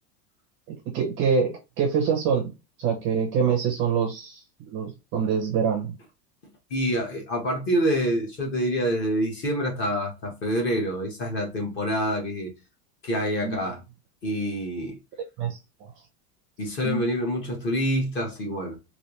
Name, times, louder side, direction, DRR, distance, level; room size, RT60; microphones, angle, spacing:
voice 1, 0.9-2.5 2.8-4.4 4.7-5.9 13.4-13.6 15.4-15.6 16.8-17.0, right 6 dB, 25° right, 0.6 m, -25 dB
voice 2, 6.7-12.5 13.0-13.8 14.2-15.0 16.6-18.8, equal, 25° left, 0.9 m, -26 dB
3.3 x 2.6 x 2.9 m
supercardioid pair, 170°, 47 cm